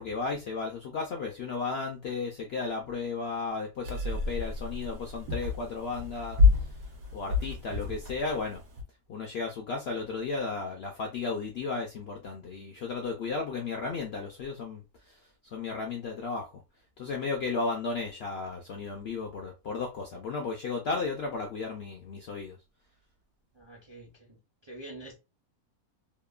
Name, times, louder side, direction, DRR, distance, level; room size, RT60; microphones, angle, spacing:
voice 1, 0.0-6.7 7.1-8.6 9.1-15.2 15.5-16.6 17.0-22.6, left 4 dB, 65° left, 0.6 m, -34 dB
sound 1, 3.8-8.8, left 4 dB, 70° right, 1.1 m, -29 dB
voice 2, 23.5-25.2, right 1 dB, 35° right, 0.4 m, -47 dB
2.9 x 2.1 x 2.3 m
omnidirectional pair, 1.5 m